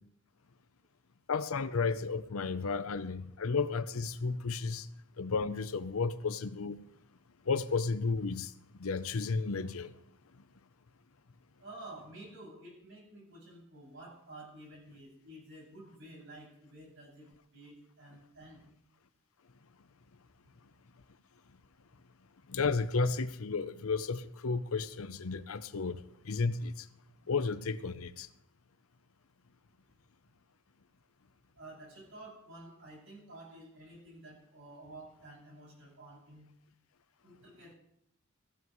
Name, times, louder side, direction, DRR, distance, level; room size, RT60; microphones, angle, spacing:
voice 1, 1.3-4.9 5.2-6.8 7.5-8.5 8.8-9.9 22.5-26.0 26.2-26.9 27.3-28.3, left 4 dB, 75° left, 0.7 m, -33 dB
voice 2, 11.6-17.3 17.5-18.6 31.6-36.4 37.2-37.8, right 1 dB, 65° right, 6.7 m, -51 dB
16.0 x 15.0 x 3.1 m
head